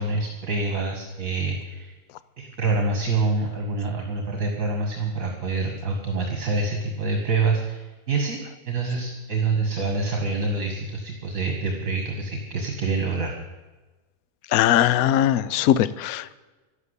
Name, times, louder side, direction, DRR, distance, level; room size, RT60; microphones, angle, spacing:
voice 1, 0.0-1.9 2.4-8.4 8.7-13.4, right 3 dB, 55° right, 2 dB, 2.2 m, -26 dB
voice 2, 14.5-16.3, left 11 dB, 70° left, 16 dB, 1.0 m, -20 dB
12.5 x 12.0 x 8.1 m, 1.2 s
omnidirectional pair, 1.7 m